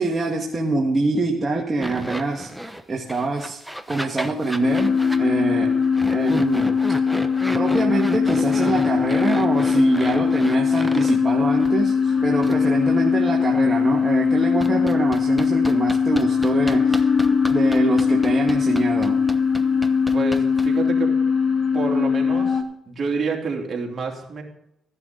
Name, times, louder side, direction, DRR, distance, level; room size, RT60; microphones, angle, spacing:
voice 1, 0.0-3.6 3.9-5.8 6.1-6.8 7.5-17.1 17.5-19.2, right 3 dB, 25° right, 0 dB, 1.6 m, -25 dB
sound 1, 1.8-2.8 3.1-5.2 5.9-11.2 11.6-11.7 12.4-12.6 14.6-20.9, equal, ahead, 0.9 m, -33 dB
sound 2, 4.6-22.6, left 6 dB, 30° left, 1.4 m, -20 dB
voice 2, 20.1-21.1 21.7-24.4, right 4 dB, 45° right, 0 dB, 3.1 m, -28 dB
14.5 x 10.5 x 3.9 m, 0.81 s
cardioid pair, 90°, 0 cm